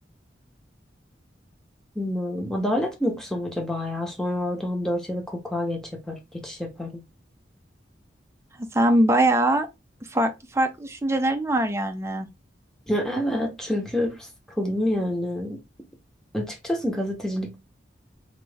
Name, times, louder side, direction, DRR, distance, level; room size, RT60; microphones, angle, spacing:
voice 1, 1.9-7.0 12.9-14.2 14.6-15.6 16.3-17.6, left 1 dB, 5° left, 1.0 m, -27 dB
voice 2, 8.7-9.7 10.1-12.3, right 1 dB, 15° right, 0.6 m, -22 dB
4.0 x 2.9 x 3.4 m
head